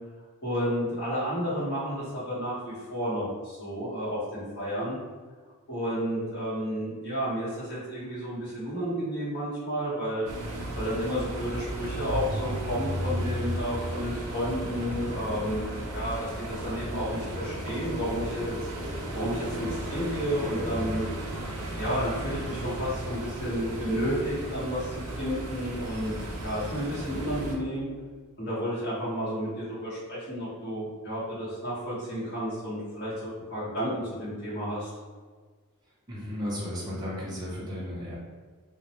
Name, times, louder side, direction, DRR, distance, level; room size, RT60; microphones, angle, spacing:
voice 1, 0.4-5.0 5.7-10.3 10.8-18.6 19.1-21.1 21.8-27.9 28.4-34.9, equal, 50° left, -10 dB, 1.2 m, -31 dB
sound 1, 10.2-27.5, right 1 dB, 80° right, 0.6 m, -35 dB
voice 2, 36.1-38.2, left 1 dB, 20° right, -7 dB, 0.5 m, -34 dB
2.4 x 2.0 x 2.9 m, 1.5 s
head